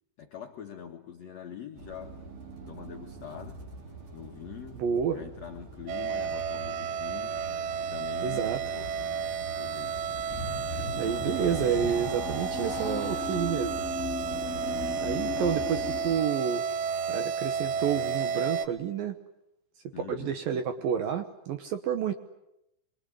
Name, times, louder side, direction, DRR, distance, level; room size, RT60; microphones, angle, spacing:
voice 1, 0.2-2.2 2.6-3.6 4.1-4.8 5.1-7.5 7.9-8.9 9.5-10.0 15.3-15.6 19.9-20.4, left 8 dB, 70° left, 4 dB, 1.6 m, -44 dB
sound 1, 1.7-16.3, right 2 dB, 35° right, 3.0 m, -47 dB
voice 2, 4.8-5.3 8.2-8.6 11.0-13.7 15.0-16.6 17.1-19.2 20.1-22.1, right 8 dB, 70° right, 8 dB, 2.3 m, -29 dB
sound 2, 5.9-18.7, right 6 dB, 90° right, 3.7 m, -32 dB
sound 3, 10.0-16.2, left 4 dB, 35° left, 1.1 m, -36 dB
25.5 x 23.0 x 9.9 m, 0.83 s
omnidirectional pair, 5.3 m